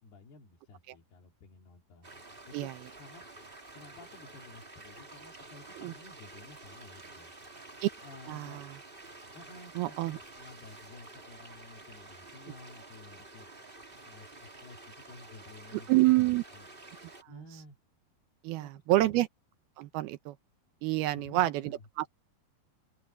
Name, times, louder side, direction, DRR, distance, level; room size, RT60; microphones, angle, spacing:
voice 1, 0.0-2.1 2.5-2.7 3.0-3.2 3.7-7.3 8.0-8.6 9.3-13.5 14.0-15.9 16.2-16.7 17.3-17.8 18.5-19.2 21.1-21.9, left 3 dB, 90° left, 4.8 m, -52 dB
sound 1, 2.0-17.2, right 2 dB, 15° right, 2.1 m, -50 dB
voice 2, 8.3-8.6 9.8-10.2 15.9-16.4 18.4-19.3 19.8-20.4 20.8-21.5 22.0-22.1, right 17 dB, 80° right, 2.8 m, -27 dB
open air
omnidirectional pair, 4.4 m